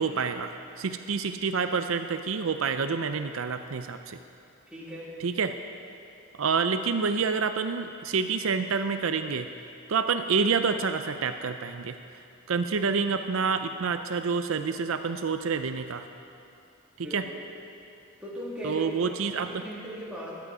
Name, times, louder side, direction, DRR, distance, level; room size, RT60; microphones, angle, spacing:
voice 1, 0.0-4.2 5.2-5.5 6.4-9.5 9.9-12.0 12.5-16.0 17.1-17.2 18.6-19.5, right 5 dB, 80° right, 8 dB, 0.5 m, -28 dB
voice 2, 4.7-5.1 17.0-17.4 18.2-18.8 19.4-20.3, equal, 5° right, -7 dB, 2.7 m, -38 dB
15.0 x 11.5 x 4.9 m, 2.6 s
head